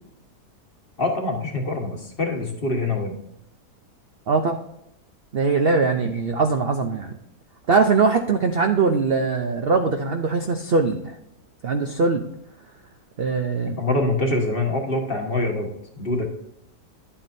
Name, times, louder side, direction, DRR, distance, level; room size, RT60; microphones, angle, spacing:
voice 1, 1.0-3.1 6.0-6.1 13.8-15.7 16.0-16.3, left 2 dB, 35° left, 2 dB, 1.4 m, -24 dB
voice 2, 4.3-4.6 5.3-7.1 7.7-11.2 11.6-12.2 13.2-13.8, right 4 dB, 55° right, 5 dB, 0.6 m, -21 dB
11.0 x 8.3 x 2.7 m, 0.80 s
omnidirectional pair, 1.7 m